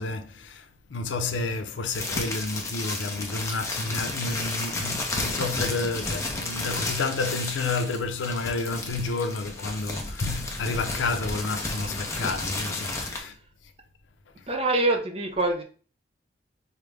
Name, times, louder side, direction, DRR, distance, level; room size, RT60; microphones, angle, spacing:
voice 1, 0.0-13.3, left 3 dB, 85° left, 0.5 m, -30 dB
sound 1, 1.9-13.2, left 2 dB, 15° left, 0.6 m, -32 dB
voice 2, 14.5-15.6, right 2 dB, 30° right, 0.6 m, -24 dB
4.9 x 2.1 x 3.3 m
head